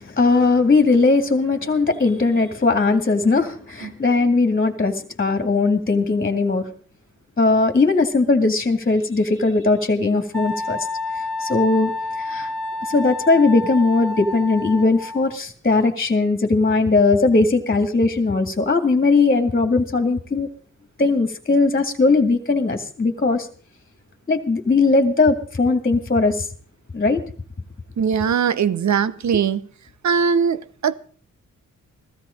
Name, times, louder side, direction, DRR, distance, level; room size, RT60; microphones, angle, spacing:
voice 1, 0.0-6.7 7.4-10.9 11.4-12.5 12.9-20.5 21.0-23.5 24.3-26.5 26.9-27.2, left 3 dB, 30° left, 2.2 m, -19 dB
Wind instrument woodwind instrument, 10.3-15.3, left 2 dB, 5° left, 2.8 m, -29 dB
voice 2, 28.0-29.7 30.0-30.9, right 7 dB, 60° right, 1.0 m, -20 dB
15.5 x 13.5 x 5.2 m
cardioid pair, 55°, 31 cm